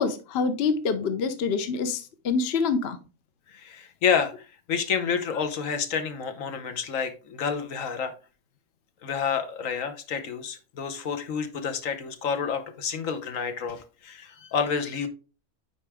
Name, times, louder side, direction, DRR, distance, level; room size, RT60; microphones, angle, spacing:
voice 1, 0.0-3.0, left 5 dB, 55° left, 0.9 m, -26 dB
voice 2, 3.5-8.1 9.0-15.1, left 6 dB, 70° left, 1.3 m, -29 dB
8.2 x 4.9 x 3.4 m
omnidirectional pair, 1.4 m